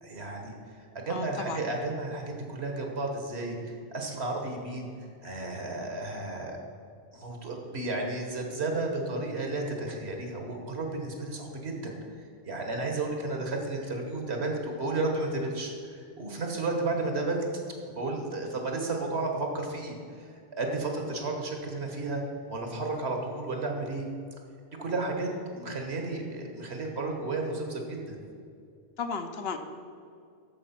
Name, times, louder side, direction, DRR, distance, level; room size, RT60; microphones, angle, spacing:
voice 1, 0.0-6.6 7.1-17.5 18.0-22.2 22.5-24.1 24.8-28.2, right 2 dB, 75° right, 2 dB, 1.7 m, -33 dB
voice 2, 1.1-1.6 29.0-29.6, left 5 dB, 70° left, 7 dB, 1.0 m, -34 dB
12.5 x 4.7 x 5.9 m, 2.3 s
omnidirectional pair, 1.1 m